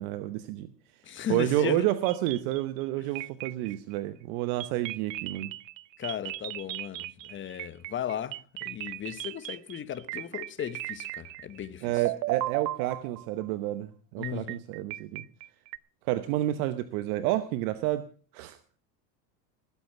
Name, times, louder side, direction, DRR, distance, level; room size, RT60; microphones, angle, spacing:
voice 1, 0.0-5.5 11.8-15.2 16.0-18.0 18.3-18.6, right 15 dB, 60° right, 1.0 m, -30 dB
voice 2, 1.0-1.9 6.0-12.0 14.2-14.6, left 10 dB, 25° left, 1.0 m, -36 dB
sound 1, 2.1-2.8 3.2-4.0 4.6-11.7 12.0-13.5 14.2-15.8, right 18 dB, 80° right, 0.7 m, -36 dB
18.5 x 8.3 x 5.6 m
supercardioid pair, 115°, 50 cm